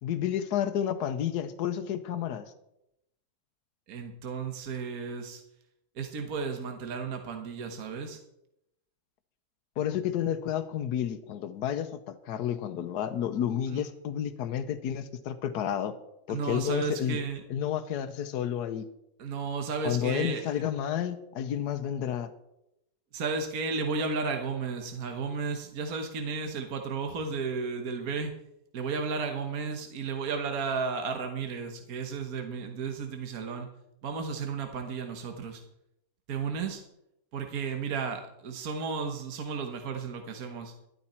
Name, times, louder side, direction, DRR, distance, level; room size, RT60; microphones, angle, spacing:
voice 1, 0.0-2.5 9.8-16.0 16.3-17.2 17.5-18.9 19.8-22.3, left 10 dB, 90° left, 11 dB, 1.3 m, -31 dB
voice 2, 3.9-5.4 6.0-8.2 13.7-13.8 16.3-17.4 19.2-20.6 23.1-28.3 28.7-33.7 34.0-35.6 36.3-36.8 37.3-40.7, right 5 dB, 65° right, 5 dB, 1.6 m, -33 dB
12.5 x 12.0 x 4.4 m, 0.84 s
omnidirectional pair, 1.7 m